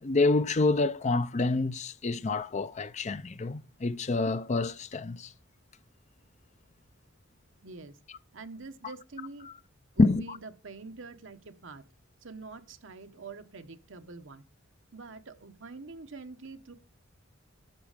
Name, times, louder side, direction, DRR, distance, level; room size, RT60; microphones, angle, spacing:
voice 1, 0.0-5.3 10.0-10.4, left 3 dB, 35° left, 0.5 m, -27 dB
voice 2, 7.6-8.0 8.3-9.5 9.9-11.8 12.2-14.4 14.9-16.7, right 3 dB, 65° right, 1.2 m, -45 dB
12.0 x 8.2 x 5.1 m
head